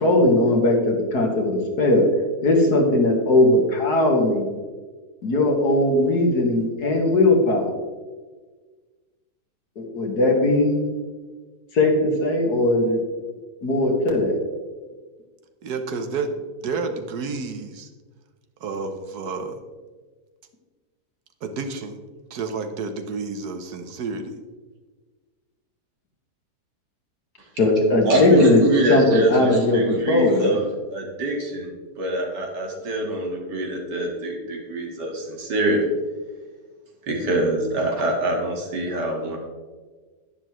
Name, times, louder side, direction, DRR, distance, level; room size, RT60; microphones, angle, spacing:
voice 1, 0.0-2.0 2.4-4.5 5.2-7.7 9.8-10.9 11.7-13.0 13.6-14.4 27.6-28.6 28.9-30.6, left 2 dB, 70° left, 1 dB, 2.2 m, -19 dB
voice 2, 15.6-17.9 18.6-19.6 21.4-22.0 22.3-24.3, right 4 dB, 70° right, 7 dB, 1.4 m, -30 dB
voice 3, 28.0-35.9 37.0-39.4, right 1 dB, 85° right, 0 dB, 2.5 m, -24 dB
10.5 x 10.0 x 3.1 m, 1.4 s
omnidirectional pair, 1.8 m